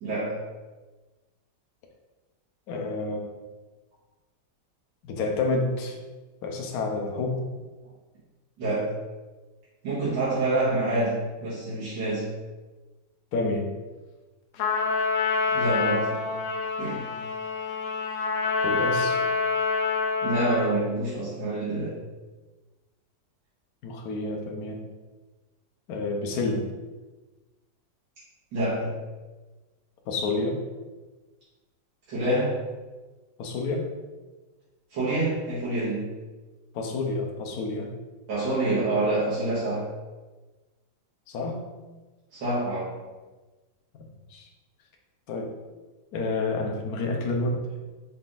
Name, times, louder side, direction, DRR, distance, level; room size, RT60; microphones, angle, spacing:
voice 1, 0.0-0.4 8.6-8.9 9.8-12.3 15.5-16.2 16.8-17.1 20.2-22.0 28.5-28.9 32.1-32.6 34.9-36.1 38.3-39.9 42.3-43.0, right 2 dB, 80° right, -11 dB, 2.1 m, -27 dB
voice 2, 2.7-3.2 5.0-6.0 6.4-7.4 13.3-13.7 18.6-19.2 23.8-24.8 25.9-26.7 30.1-30.6 33.4-33.9 36.7-37.9 41.3-41.6 43.9-44.5 45.3-45.5 46.1-47.6, left 3 dB, 65° left, 1 dB, 1.1 m, -29 dB
Trumpet, 14.6-20.8, left 4 dB, 80° left, 0.7 m, -27 dB
5.8 x 3.6 x 2.5 m, 1.2 s
omnidirectional pair, 2.0 m